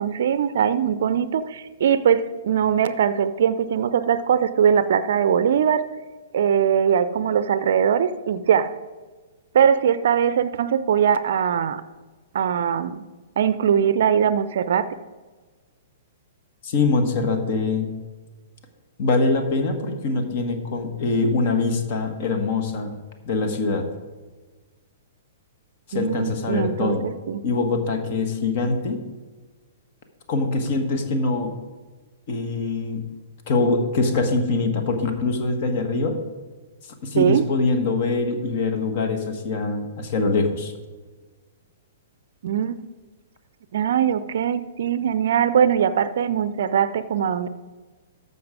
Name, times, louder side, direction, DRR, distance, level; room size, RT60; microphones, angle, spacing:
voice 1, 0.0-5.8 6.3-8.7 9.5-11.8 12.3-13.0 13.4-14.9 25.9-27.0 27.3-27.4 37.2-37.4 42.4-42.7 43.7-47.5, right 8 dB, 60° right, 14 dB, 0.5 m, -21 dB
voice 2, 16.6-17.9 19.0-22.9 23.2-23.9 25.9-27.0 27.4-29.0 30.3-31.5 32.3-33.0 33.5-36.2 37.0-40.7, left 3 dB, 50° left, 6 dB, 1.4 m, -23 dB
13.5 x 5.5 x 4.9 m, 1.3 s
figure-of-eight pair, 115°, 0 cm